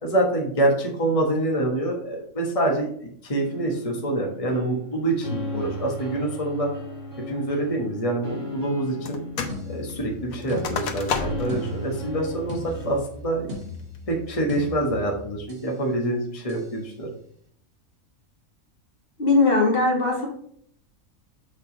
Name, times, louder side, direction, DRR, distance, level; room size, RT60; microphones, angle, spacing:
voice 1, 0.0-6.7 7.3-9.2 9.7-13.5 14.1-17.1, right 1 dB, 25° left, -1 dB, 1.4 m, -26 dB
sound 1, 3.4-13.0, equal, 40° right, 3.1 m, -36 dB
sound 2, 9.1-9.6 9.9-11.6 12.1-12.2 12.7-13.1 13.6-14.0, left 6 dB, 90° left, 1.3 m, -31 dB
sound 3, 9.5-15.8 16.5-16.8, left 2 dB, 75° right, 2.3 m, -38 dB
voice 2, 19.2-20.3, left 3 dB, 45° left, -1 dB, 1.4 m, -19 dB
6.7 x 4.0 x 5.1 m, 0.63 s
omnidirectional pair, 1.4 m